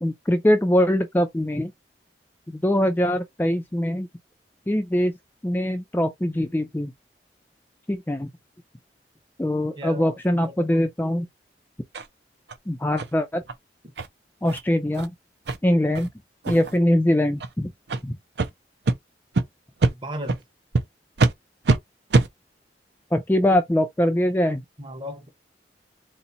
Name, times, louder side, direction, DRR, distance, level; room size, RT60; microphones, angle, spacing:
voice 1, 0.0-1.7 2.5-4.1 4.7-5.1 5.4-6.9 7.9-8.3 9.4-11.3 12.7-13.4 14.4-15.1 15.6-16.1 16.5-17.7 18.0-18.2 23.1-24.6, left 1 dB, 10° left, 0.4 m, -22 dB
voice 2, 9.8-10.9 19.9-20.4 24.8-25.3, equal, 25° right, 1.0 m, -36 dB
sound 1, 11.9-12.1 12.5-12.6 13.0-13.1 13.5-13.6 14.0-14.1 14.4-14.6 14.9-15.1 15.5-15.6 15.9-16.1 16.4-16.8 17.3-17.5 17.9-18.0 18.4-18.5 18.8-19.0 19.3-19.4 19.8-19.9 20.3-20.4 20.7-20.8 21.2-21.3 21.6-21.8 22.1-22.3, right 3 dB, 70° right, 0.6 m, -22 dB
4.1 x 2.0 x 4.0 m
head